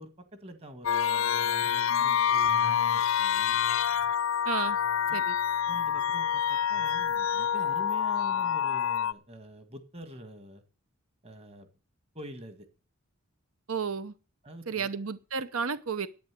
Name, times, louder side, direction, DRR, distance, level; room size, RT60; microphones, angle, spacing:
voice 1, 0.0-3.6 5.1-5.2 5.7-10.6 11.2-11.7 12.1-12.7 14.4-14.9, equal, 30° right, 8 dB, 1.8 m, -46 dB
sound 1, 0.8-9.1, left 8 dB, 70° left, 0.5 m, -27 dB
voice 2, 4.5-4.8 5.1-5.3 13.7-14.1 14.7-16.1, right 6 dB, 90° right, 13 dB, 0.8 m, -32 dB
10.5 x 9.2 x 7.5 m, 0.36 s
head